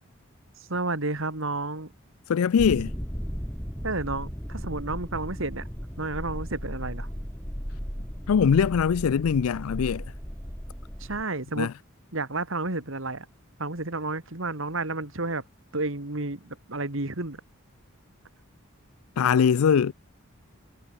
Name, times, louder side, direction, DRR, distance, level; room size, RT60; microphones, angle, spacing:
voice 1, 0.7-1.9 3.8-5.7 6.0-7.1 11.0-11.7 12.1-13.3 13.6-15.4 15.7-17.4, right 2 dB, 65° right, 2.5 m, -31 dB
voice 2, 2.3-2.9 8.3-10.0 11.6-11.7 19.2-19.9, left 7 dB, 85° left, 0.4 m, -22 dB
sound 1, 2.6-11.2, equal, 10° left, 4.9 m, -36 dB
head